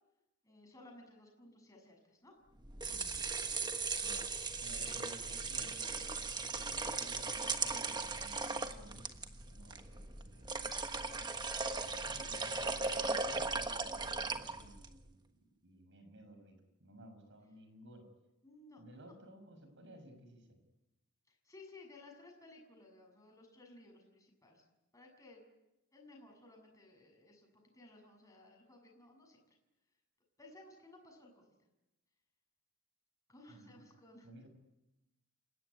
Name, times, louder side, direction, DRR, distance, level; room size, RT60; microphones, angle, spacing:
voice 1, 0.4-2.4 4.8-5.0 18.4-19.1 21.3-24.6 24.9-25.4 25.9-29.6 30.4-31.4 33.3-34.3, left 2 dB, 15° left, 1 dB, 7.0 m, -58 dB
sound 1, 2.6-14.9, right 4 dB, 20° right, 1.3 m, -38 dB
voice 2, 4.6-5.9 6.4-9.0 9.3-10.7 11.8-18.1 18.8-20.6 33.5-33.8 34.2-34.5, right 1 dB, 55° right, 8 dB, 6.2 m, -57 dB
28.5 x 17.0 x 9.6 m, 0.95 s
head